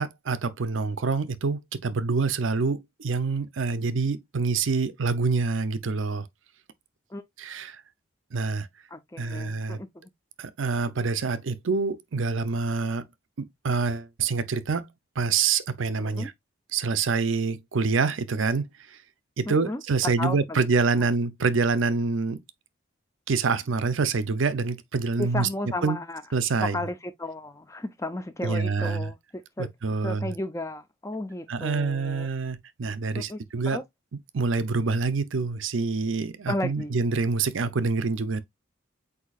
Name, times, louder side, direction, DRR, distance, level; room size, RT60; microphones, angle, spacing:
voice 1, 0.0-6.3 7.4-7.8 8.3-8.7 9.2-9.8 10.4-13.0 13.4-14.9 15.2-16.3 16.7-19.0 19.4-22.4 23.3-25.5 25.8-26.0 26.3-26.8 28.4-29.1 29.6-30.3 31.5-33.8 34.3-38.4, right 4 dB, 75° right, 0.6 m, -26 dB
voice 2, 8.9-10.1 16.0-16.3 19.5-20.7 25.2-26.2 26.6-29.7 30.0-32.3 33.1-33.4 33.7-33.8 36.5-37.0, left 1 dB, 15° left, 0.5 m, -34 dB
8.1 x 2.8 x 2.4 m
head